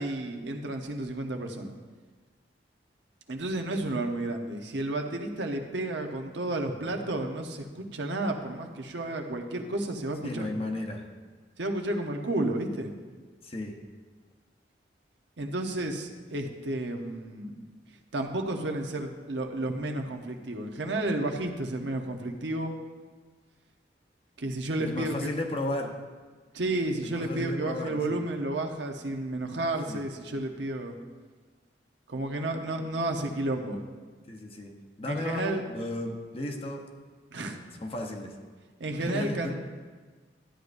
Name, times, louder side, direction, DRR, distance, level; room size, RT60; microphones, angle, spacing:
voice 1, 0.0-1.7 3.3-10.5 11.6-12.9 15.4-17.7 18.1-22.8 24.4-25.3 26.5-31.0 32.1-33.8 35.0-35.6 37.3-37.6 38.8-39.6, right 1 dB, 75° right, 3 dB, 0.9 m, -32 dB
voice 2, 10.2-11.1 13.4-13.7 24.8-25.9 27.0-28.2 29.9-30.0 34.3-34.7 35.0-36.8 37.8-38.4 39.0-39.6, left 1 dB, 30° left, 2 dB, 0.9 m, -34 dB
12.5 x 9.5 x 2.6 m, 1.4 s
head